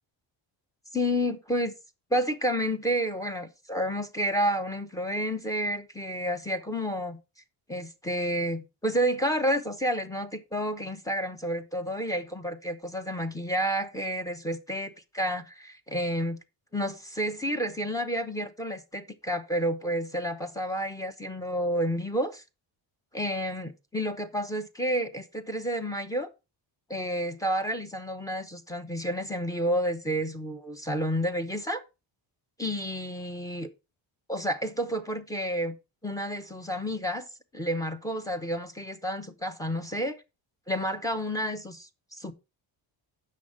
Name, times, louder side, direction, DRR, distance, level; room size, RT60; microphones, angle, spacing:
voice 1, 0.9-1.7 2.1-7.2 7.7-16.4 16.7-22.4 23.1-26.3 26.9-31.8 32.6-33.7 34.3-35.7 36.0-37.2 37.5-40.2 40.7-42.3, equal, 5° left, 0.8 m, -30 dB
8.2 x 6.5 x 4.8 m
cardioid pair, 160°, 47 cm